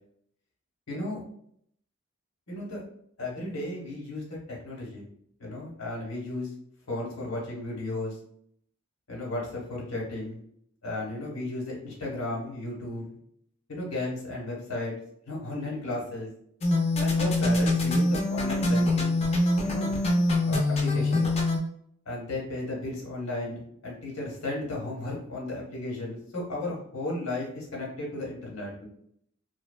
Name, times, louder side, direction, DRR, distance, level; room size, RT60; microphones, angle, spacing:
voice 1, 0.9-1.2 2.5-2.8 3.2-5.1 5.4-6.5 6.9-8.2 9.1-10.4 10.8-13.2 13.7-14.9 15.3-16.3 17.0-19.1 19.6-19.9 20.5-21.3 22.1-28.9, left 2 dB, 80° left, -3 dB, 1.0 m, -34 dB
sound 1, 16.6-21.6, left 2 dB, 30° left, 0.4 m, -24 dB
2.8 x 2.2 x 2.2 m, 0.67 s
head